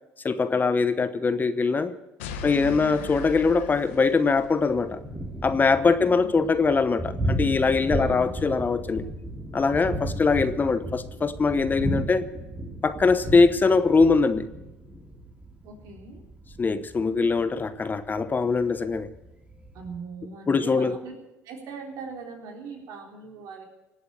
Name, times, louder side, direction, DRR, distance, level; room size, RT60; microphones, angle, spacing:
voice 1, 0.2-1.9 2.4-5.0 5.4-9.0 9.5-12.3 12.8-14.4 16.6-19.1 20.5-20.9, left 4 dB, 30° left, 12 dB, 1.0 m, -22 dB
sound 1, 2.2-4.8, left 5 dB, 85° left, 1.2 m, -38 dB
voice 2, 2.4-3.0 6.0-6.4 8.0-8.3 15.6-16.2 19.7-21.1 21.4-23.6, right 4 dB, 65° right, 1 dB, 3.8 m, -40 dB
Thunder, 4.7-20.0, right 1 dB, 15° right, 3.2 m, -34 dB
18.0 x 8.2 x 8.1 m, 0.98 s
hypercardioid pair, 70°, 7 cm